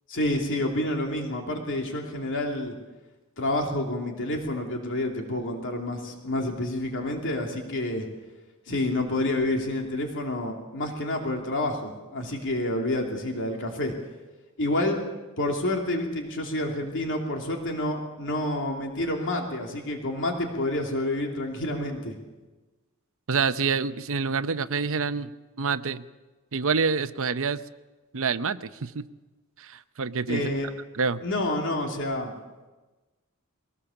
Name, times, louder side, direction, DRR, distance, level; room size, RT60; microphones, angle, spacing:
voice 1, 0.1-2.7 3.4-8.1 8.7-13.9 14.6-15.0 15.4-22.2 30.3-30.7 31.2-32.3, left 1 dB, 60° left, 2 dB, 2.8 m, -28 dB
voice 2, 23.3-25.3 25.6-26.0 26.5-27.6 28.1-29.0 29.6-30.4 30.9-31.2, right 5 dB, 65° right, 12 dB, 0.8 m, -27 dB
22.0 x 18.5 x 7.2 m, 1.2 s
head